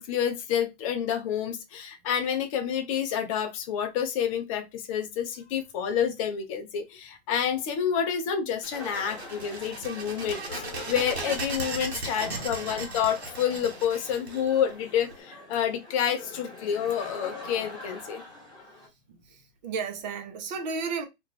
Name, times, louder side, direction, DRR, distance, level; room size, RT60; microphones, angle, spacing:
voice 1, 0.0-18.2, left 8 dB, 30° left, 0.6 m, -29 dB
sound 1, 8.6-15.1, right 3 dB, 70° right, 1.0 m, -37 dB
sound 2, 8.7-18.9, left 3 dB, 10° left, 1.1 m, -44 dB
voice 2, 11.9-12.5 19.6-21.1, right 5 dB, 40° right, 0.7 m, -33 dB
2.5 x 2.3 x 3.1 m
hypercardioid pair, 125°, 34 cm